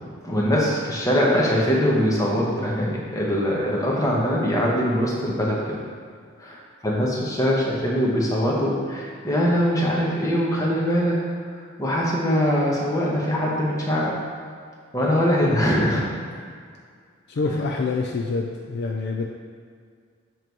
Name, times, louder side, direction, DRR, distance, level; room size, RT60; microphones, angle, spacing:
voice 1, 0.2-5.8 6.4-11.2 11.8-14.1 14.9-16.0, equal, 15° left, -4 dB, 0.9 m, -22 dB
voice 2, 17.3-19.3, left 3 dB, 50° left, 1 dB, 0.4 m, -26 dB
7.5 x 3.1 x 4.6 m, 2.1 s
head